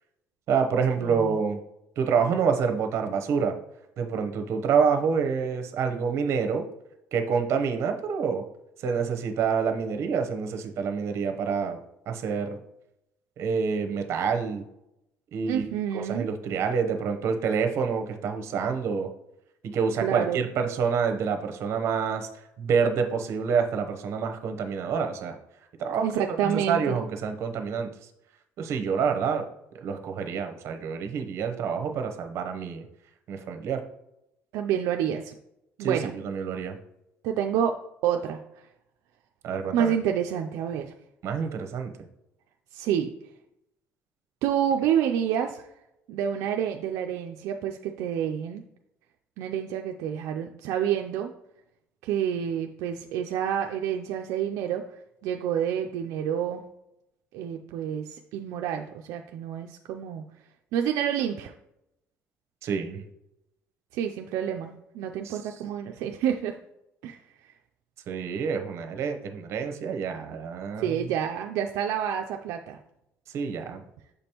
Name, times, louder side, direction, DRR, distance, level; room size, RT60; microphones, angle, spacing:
voice 1, 0.5-1.6 2.0-3.6 4.0-6.7 7.1-8.4 8.8-12.6 13.4-14.6 15.3-15.6 15.9-19.1 19.6-22.3 22.6-25.3 25.8-26.1 26.4-27.9 28.6-29.5 29.7-32.8 33.3-33.8 35.8-36.8 39.4-39.9 41.2-41.9 62.6-63.0 65.2-65.4 68.1-71.1 73.3-73.8, right 6 dB, 60° right, 6 dB, 0.8 m, -27 dB
voice 2, 15.5-16.3 20.0-20.4 26.0-27.0 34.5-35.3 35.8-36.1 37.2-38.4 39.7-40.9 42.7-43.1 44.4-45.7 46.1-48.6 49.4-51.3 52.0-56.6 57.3-60.2 60.7-61.5 63.9-66.6 67.0-67.2 70.8-72.8, right 9 dB, 85° right, 4 dB, 0.4 m, -28 dB
6.7 x 5.2 x 2.9 m, 0.86 s
cardioid pair, 130°, 5 cm